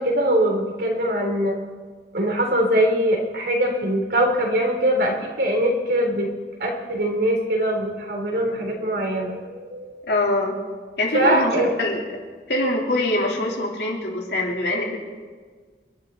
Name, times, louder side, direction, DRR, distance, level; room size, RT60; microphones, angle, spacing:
voice 1, 0.0-1.6 2.1-6.3 6.6-10.1 11.1-11.7, right 1 dB, 60° right, 1 dB, 3.5 m, -22 dB
voice 2, 10.1-10.6 11.0-12.0 12.5-15.0, left 1 dB, 70° left, -1 dB, 3.6 m, -23 dB
28.0 x 12.0 x 4.1 m, 1.6 s
head